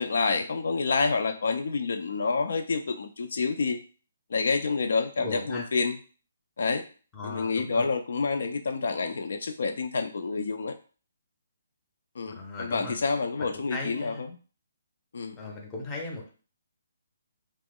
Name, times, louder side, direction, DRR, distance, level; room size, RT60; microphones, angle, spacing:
voice 1, 0.0-3.8 4.3-6.0 6.6-6.8 7.2-10.7 12.2-14.4 15.1-15.4, left 4 dB, 70° left, 6 dB, 0.3 m, -28 dB
voice 2, 5.2-5.7 7.1-7.8 12.3-13.0 13.4-14.2 15.4-16.3, left 2 dB, 15° left, 0 dB, 0.6 m, -37 dB
2.9 x 2.0 x 3.6 m, 0.39 s
hypercardioid pair, 165°, 0 cm